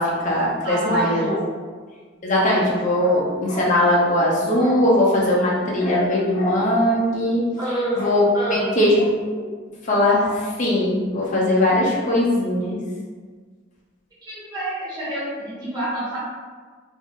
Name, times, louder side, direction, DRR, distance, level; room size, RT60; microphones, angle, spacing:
voice 1, 0.0-1.2 2.2-7.4 8.0-8.2 8.5-9.1 9.9-12.8, left 1 dB, 40° left, -4 dB, 0.7 m, -20 dB
voice 2, 0.6-1.4 7.6-8.7 14.2-16.2, right 1 dB, 20° right, -11 dB, 0.9 m, -27 dB
2.6 x 2.0 x 3.4 m, 1.5 s
head